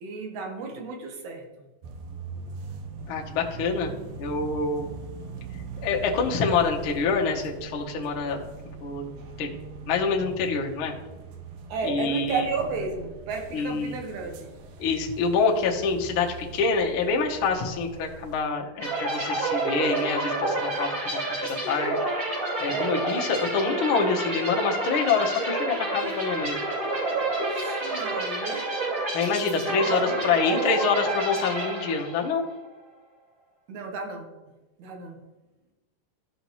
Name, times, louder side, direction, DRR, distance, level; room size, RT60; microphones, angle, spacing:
voice 1, 0.0-1.7 11.7-14.5 22.7-23.0 27.4-28.7 29.8-30.7 33.7-34.3 34.8-35.2, right 4 dB, 65° right, 2 dB, 2.4 m, -33 dB
sound 1, 1.8-18.4, right 4 dB, 90° right, 1.4 m, -41 dB
voice 2, 3.1-3.9 4.2-4.9 5.8-8.4 8.8-9.6 9.9-10.9 11.8-12.5 13.5-14.0 14.8-22.0 22.6-26.6 29.1-32.4, left 5 dB, 80° left, 0 dB, 1.1 m, -26 dB
sound 2, 18.8-32.4, right 2 dB, 40° right, 3.8 m, -29 dB
14.0 x 5.5 x 3.0 m, 1.1 s
omnidirectional pair, 3.9 m